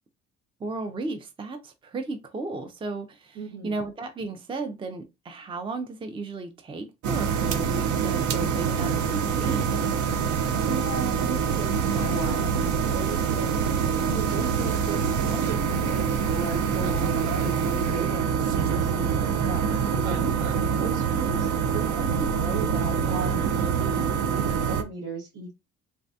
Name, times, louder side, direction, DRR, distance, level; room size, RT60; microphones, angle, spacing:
voice 1, 0.6-3.4 3.6-9.8, right 3 dB, 15° right, 0.4 m, -34 dB
voice 2, 3.3-3.8 10.7-13.5 14.0-25.5, right 4 dB, 90° right, 1.5 m, -36 dB
sound 1, 7.0-24.8, right 7 dB, 75° right, 0.6 m, -25 dB
3.3 x 2.1 x 2.6 m
cardioid pair, 90°, 30 cm